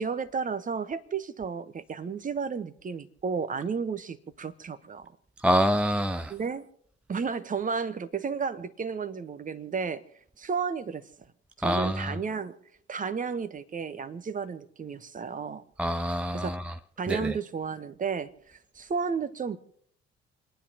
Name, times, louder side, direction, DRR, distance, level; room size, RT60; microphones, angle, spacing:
voice 1, 0.0-5.1 6.3-6.7 7.1-10.0 10.4-11.0 11.6-12.6 12.9-15.6 16.3-16.5 17.0-19.6, right 5 dB, 25° right, 1.1 m, -32 dB
voice 2, 5.4-6.3 11.6-12.1 15.8-16.6 17.1-17.2, equal, 5° right, 0.5 m, -25 dB
29.5 x 10.0 x 2.9 m
figure-of-eight pair, 50°, 30 cm